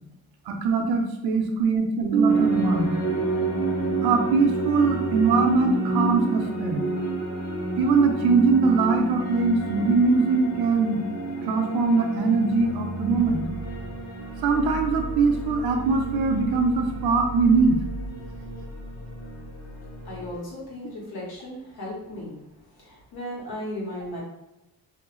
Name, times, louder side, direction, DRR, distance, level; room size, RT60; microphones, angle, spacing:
voice 1, 0.5-3.0 4.0-6.8 7.8-11.0 11.4-13.4 14.4-17.8, right 4 dB, 75° right, 4 dB, 0.6 m, -21 dB
sound 1, 2.3-20.4, right 2 dB, 40° left, 1.1 m, -30 dB
voice 2, 20.0-22.4 22.8-24.2, left 1 dB, 75° left, -5 dB, 1.3 m, -36 dB
2.8 x 2.0 x 3.0 m, 0.91 s
cardioid pair, 85°, 37 cm